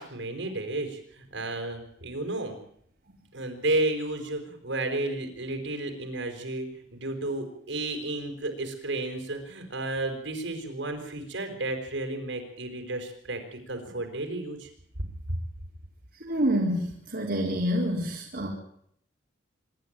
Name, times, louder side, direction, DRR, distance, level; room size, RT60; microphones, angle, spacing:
voice 1, 0.0-2.6 3.3-14.7 15.3-15.4, right 2 dB, 75° right, 5 dB, 4.6 m, -32 dB
voice 2, 16.2-18.5, equal, 55° right, -2 dB, 3.6 m, -27 dB
25.5 x 11.5 x 8.9 m, 0.68 s
head